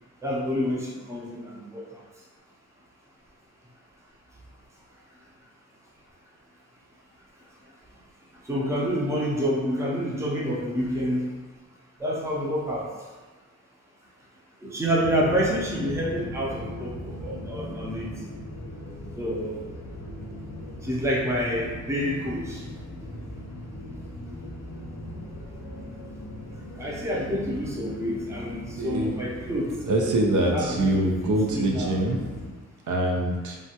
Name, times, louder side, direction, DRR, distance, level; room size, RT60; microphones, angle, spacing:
voice 1, 0.2-2.0 8.4-11.3 12.0-12.9 14.6-18.1 19.2-19.6 20.8-22.6 26.8-29.8 30.5-32.0, equal, 10° right, -4 dB, 0.5 m, -28 dB
sound 1, 15.0-32.5, left 1 dB, 75° left, 0.5 m, -38 dB
voice 2, 28.8-29.1 29.9-32.2 32.9-33.6, right 1 dB, 80° right, 0 dB, 0.5 m, -24 dB
3.2 x 2.2 x 2.7 m, 1.3 s
wide cardioid pair, 155°, 30 cm